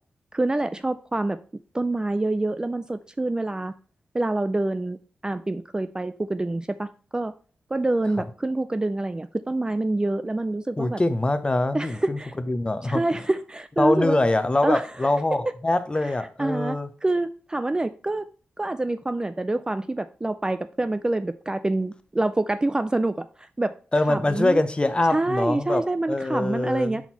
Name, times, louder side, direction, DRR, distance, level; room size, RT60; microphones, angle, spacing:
voice 1, 0.3-1.4 1.7-3.7 4.1-5.0 5.2-7.3 7.7-11.0 11.7-12.3 12.8-14.2 14.6-14.9 16.0-16.1 16.4-18.3 18.6-23.7 24.1-24.6 25.1-27.0, right 2 dB, 20° right, 11 dB, 0.3 m, -26 dB
voice 2, 10.8-12.2 12.5-13.0 13.8-16.9 23.9-25.8 26.1-27.0, left 2 dB, 25° left, 10 dB, 0.7 m, -23 dB
5.9 x 4.3 x 4.1 m, 0.39 s
cardioid pair, 70°, 4 cm